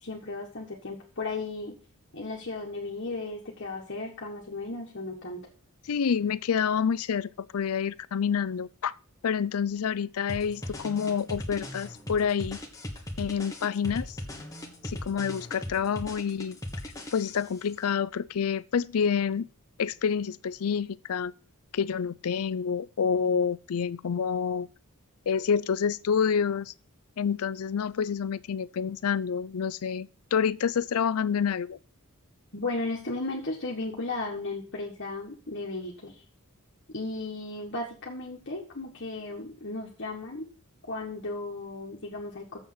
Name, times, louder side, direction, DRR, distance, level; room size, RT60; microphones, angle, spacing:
voice 1, 0.0-1.7 2.1-5.5 32.5-36.2 36.9-40.5 40.9-42.6, left 2 dB, 55° left, 1.5 m, -35 dB
voice 2, 5.9-8.9 9.2-12.6 13.2-14.2 14.8-16.6 17.1-19.5 19.8-21.3 21.7-24.7 25.3-26.7 27.2-31.8, left 7 dB, 75° left, 0.4 m, -28 dB
sound 1, 10.3-17.6, left 1 dB, 15° left, 1.5 m, -39 dB
7.3 x 6.4 x 7.9 m
head